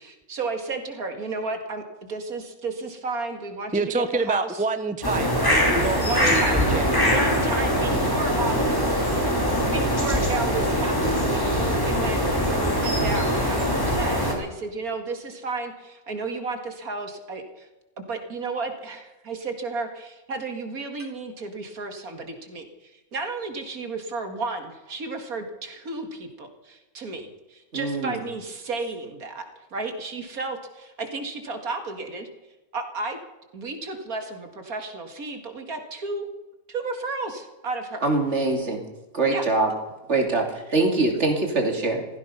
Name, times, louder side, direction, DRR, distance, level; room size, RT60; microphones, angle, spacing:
voice 1, 0.0-4.6 6.0-8.9 9.7-12.2 12.5-17.7 18.0-29.4 29.7-32.3 32.7-33.2 33.5-36.3 36.7-38.1 39.3-39.4, right 3 dB, 80° right, 5 dB, 2.5 m, -33 dB
voice 2, 3.7-7.3, right 3 dB, 10° right, 10 dB, 0.6 m, -28 dB
sound 1, 5.0-14.3, equal, 15° left, 3.2 m, -22 dB
voice 3, 27.7-28.2 38.0-38.8 39.1-39.7 40.1-42.1, right 2 dB, 50° right, 3 dB, 3.0 m, -23 dB
16.0 x 15.5 x 5.6 m, 1.1 s
omnidirectional pair, 1.5 m